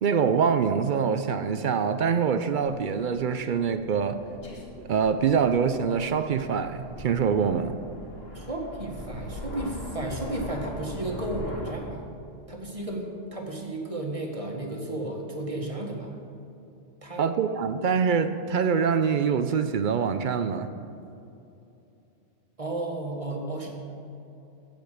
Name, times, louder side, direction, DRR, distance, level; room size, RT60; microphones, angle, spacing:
voice 1, 0.0-4.2 4.8-7.7 17.2-20.7, right 6 dB, 60° right, 10 dB, 0.5 m, -24 dB
Aircraft, 3.0-11.7, left 1 dB, 55° left, 1.9 m, -41 dB
voice 2, 8.3-12.1 12.5-16.2 17.0-17.2 22.6-23.7, right 1 dB, 25° right, 0 dB, 1.5 m, -33 dB
15.0 x 5.2 x 6.5 m, 2.8 s
omnidirectional pair, 1.3 m